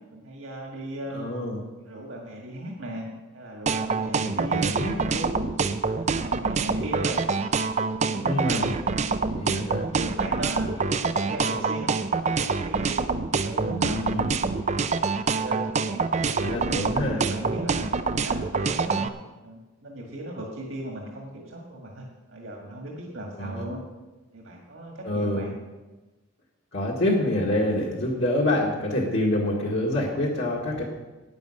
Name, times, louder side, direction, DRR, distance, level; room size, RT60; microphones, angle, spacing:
voice 1, 0.1-1.3 1.8-3.0 3.3-5.5 5.9-7.2 7.8-8.7 9.9-10.9 11.2-11.9 12.2-13.0 13.3-14.0 15.3-17.9 18.2-19.1 19.4-23.8 24.3-25.5, right 1 dB, 65° right, -1 dB, 1.9 m, -37 dB
voice 2, 1.1-1.6 4.2-4.9 8.2-8.7 9.4-9.8 13.6-14.3 16.2-17.2 23.4-23.6 25.0-25.5 26.7-30.8, left 1 dB, 60° left, -3 dB, 1.8 m, -27 dB
sound 1, 3.7-19.1, right 4 dB, 35° right, 0.5 m, -25 dB
10.5 x 9.3 x 6.4 m, 1.2 s
head